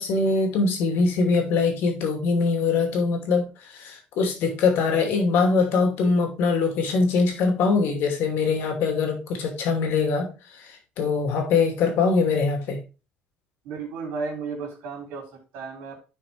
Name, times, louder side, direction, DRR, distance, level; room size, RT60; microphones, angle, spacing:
voice 1, 0.0-10.3 10.6-12.8, left 4 dB, 70° left, 3 dB, 2.5 m, -23 dB
voice 2, 13.6-16.0, right 4 dB, 75° right, 2 dB, 3.0 m, -34 dB
10.0 x 4.7 x 3.4 m, 0.32 s
cardioid pair, 105°, 4 cm